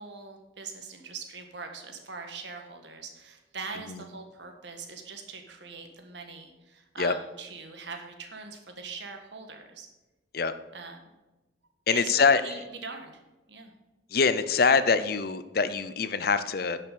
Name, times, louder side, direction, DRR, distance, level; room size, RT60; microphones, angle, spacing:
voice 1, 0.0-9.9 10.7-11.0 11.9-13.1 13.5-13.7, right 4 dB, 70° right, 4 dB, 1.6 m, -42 dB
voice 2, 11.9-12.4 14.1-16.8, left 5 dB, 55° left, 13 dB, 0.6 m, -24 dB
11.0 x 5.9 x 6.8 m, 1.1 s
head